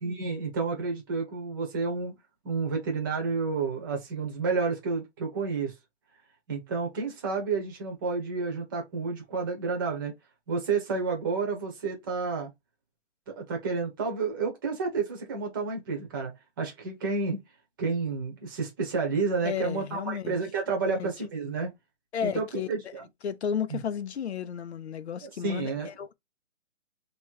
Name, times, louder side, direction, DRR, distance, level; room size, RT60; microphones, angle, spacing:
voice 1, 0.0-2.1 2.4-5.7 6.5-10.1 10.5-12.5 13.3-16.3 16.6-17.4 17.8-21.7 22.2-23.0 23.7-23.8 25.2-25.9, right 4 dB, 20° right, 1.0 m, -30 dB
voice 2, 19.4-20.4 20.8-21.1 22.1-22.9 23.2-26.1, left 8 dB, 60° left, 0.7 m, -33 dB
3.1 x 3.0 x 4.5 m
hypercardioid pair, 175°, 36 cm